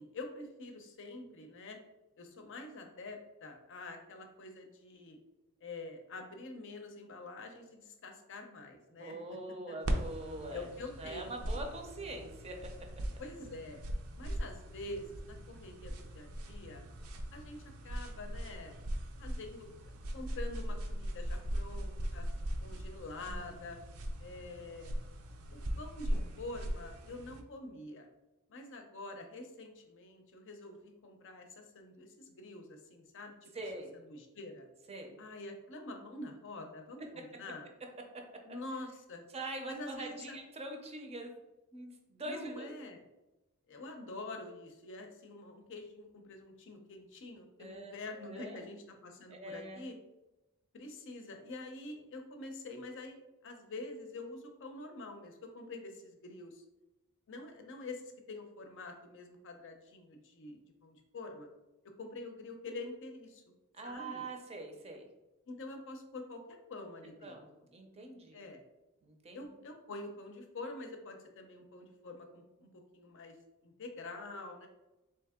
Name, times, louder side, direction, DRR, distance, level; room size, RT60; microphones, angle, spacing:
voice 1, 0.0-1.8 2.2-5.2 5.6-9.2 9.7-9.8 10.5-11.6 13.2-13.8 14.1-16.8 17.3-18.7 19.2-22.2 22.6-23.8 24.2-24.9 25.5-28.1 28.5-33.5 33.9-34.6 35.2-37.7 38.4-39.2 39.7-40.4 42.2-43.0 43.7-50.0 50.7-56.6 57.3-61.5 62.0-63.4 63.8-64.2 65.5-67.4 68.3-68.6 69.3-73.4 73.6-74.7, left 2 dB, 60° left, 4 dB, 0.6 m, -46 dB
voice 2, 9.0-10.7 11.0-12.6 23.2-23.6 33.5-33.9 34.9-35.2 39.3-41.3 41.7-42.7 47.6-48.6 49.3-49.8 63.7-65.1 67.2-67.5 67.7-68.4 69.0-69.5, right 2 dB, 30° right, 3 dB, 0.5 m, -43 dB
sound 1, 9.8-27.4, equal, 75° right, 0.5 m, -40 dB
3.5 x 2.8 x 3.5 m, 1.0 s
head